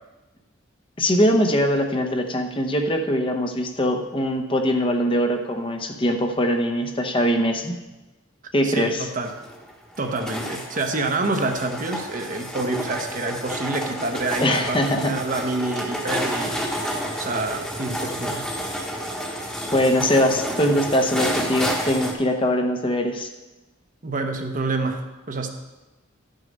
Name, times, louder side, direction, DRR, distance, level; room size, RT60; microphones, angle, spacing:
voice 1, 1.0-7.8 8.5-9.1 14.4-15.1 19.7-23.3, equal, 25° left, 4 dB, 0.8 m, -22 dB
voice 2, 8.6-9.3 10.0-18.5 24.0-25.5, right 3 dB, 40° right, 4 dB, 1.0 m, -27 dB
sound 1, 9.3-22.1, equal, 5° left, 1.1 m, -30 dB
12.0 x 6.5 x 5.3 m, 1.1 s
head